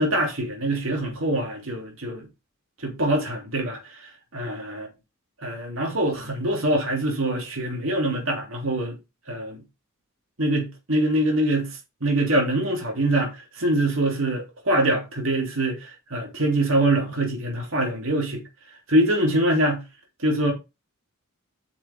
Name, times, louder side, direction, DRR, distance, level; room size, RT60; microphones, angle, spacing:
voice 1, 0.0-2.3 2.8-4.9 5.4-9.0 9.3-9.6 10.4-18.4 18.9-19.8 20.2-20.5, right 1 dB, 70° right, 2.9 m, -24 dB
9.0 x 5.9 x 3.5 m
head